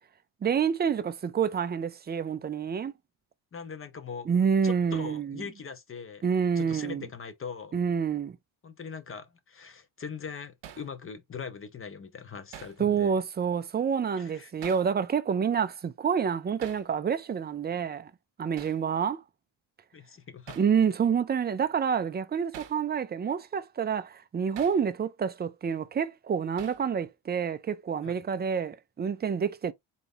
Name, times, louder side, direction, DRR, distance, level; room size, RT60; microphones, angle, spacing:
voice 1, 0.4-2.9 4.3-5.4 6.2-7.1 7.7-8.4 12.8-18.1 18.4-19.2 20.6-29.7, right 7 dB, 25° right, 0.3 m, -28 dB
voice 2, 3.5-4.3 4.6-6.2 6.6-7.7 8.6-13.2 14.2-14.5 19.9-20.6 28.0-28.1, left 6 dB, 25° left, 0.6 m, -41 dB
Hammer, 10.6-10.9 12.5-12.8 14.6-14.9 16.6-16.9 18.6-18.8 20.5-20.7 22.5-22.8 24.6-24.8 26.6-26.9, right 10 dB, 60° right, 0.8 m, -45 dB
4.0 x 2.9 x 3.7 m
cardioid pair, 145°, 49 cm